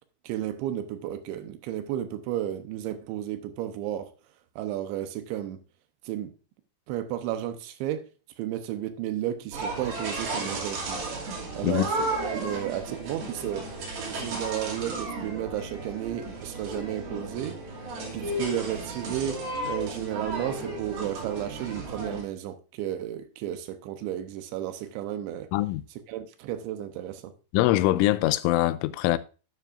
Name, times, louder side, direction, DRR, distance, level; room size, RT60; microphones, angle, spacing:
voice 1, 0.2-4.1 4.6-5.6 6.1-6.3 6.9-8.1 8.4-11.0 11.5-13.6 14.0-17.6 18.1-25.5 26.1-27.3, right 11 dB, 80° right, 3.1 m, -33 dB
sound 1, 9.5-22.2, right 2 dB, 60° right, 4.1 m, -34 dB
voice 2, 25.5-25.8 27.5-29.2, left 16 dB, 90° left, 3.1 m, -23 dB
11.0 x 9.5 x 2.5 m
omnidirectional pair, 5.5 m